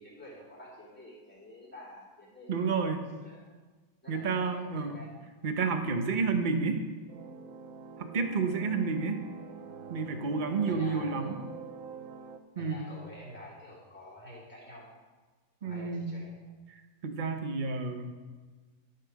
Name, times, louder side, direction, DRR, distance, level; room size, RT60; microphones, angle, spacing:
voice 1, 0.0-2.7 3.1-3.5 4.0-5.1 10.6-11.4 12.6-14.9 15.6-16.4, left 1 dB, 5° left, -7 dB, 3.4 m, -49 dB
voice 2, 2.5-3.0 4.1-5.0 5.4-6.8 8.0-9.2 9.9-11.4 12.6-12.8 15.6-16.1 16.7-18.1, right 4 dB, 35° right, 6 dB, 0.8 m, -30 dB
sound 1, 7.1-12.4, right 5 dB, 65° right, 0.9 m, -46 dB
12.5 x 5.8 x 6.4 m, 1.4 s
omnidirectional pair, 1.8 m